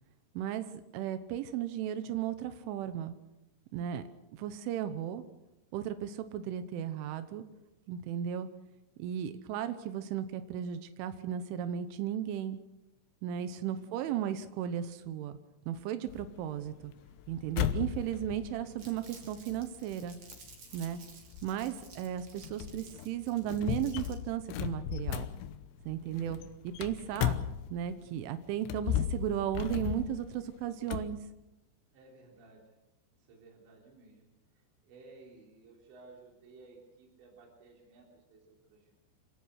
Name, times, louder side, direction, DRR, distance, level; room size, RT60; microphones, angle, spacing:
voice 1, 0.4-3.1 3.7-4.0 4.3-5.2 5.7-7.4 7.9-8.5 9.0-12.6 13.2-15.4 15.7-16.9 17.3-20.2 20.7-21.0 21.4-25.3 25.9-26.4 26.6-27.4 27.7-31.2, right 10 dB, 90° right, 11 dB, 3.5 m, -35 dB
voice 2, 13.7-14.4 31.9-32.7 33.2-39.0, right 3 dB, 70° right, -1 dB, 5.7 m, -57 dB
sound 1, 16.1-28.1 28.6-31.2, left 10 dB, 80° left, 3.2 m, -36 dB
Crumpling crinkling, 18.8-24.3, right 4 dB, 45° right, 4.4 m, -54 dB
26.5 x 18.0 x 6.4 m, 0.94 s
omnidirectional pair, 5.4 m